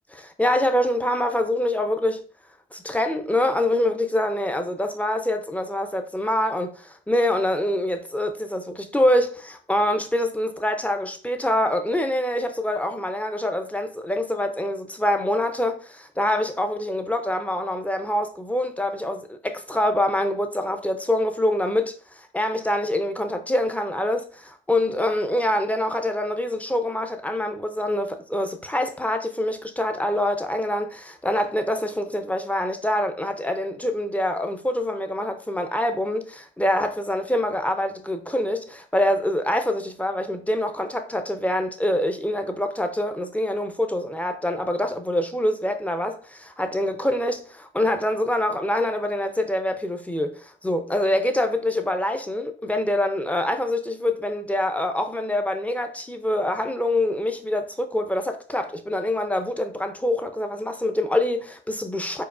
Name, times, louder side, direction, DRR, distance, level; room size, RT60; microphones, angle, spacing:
voice 1, 0.1-2.3 2.7-62.2, left 1 dB, 5° left, 0.4 m, -25 dB
4.5 x 2.3 x 2.4 m
cardioid pair, 90°, 20 cm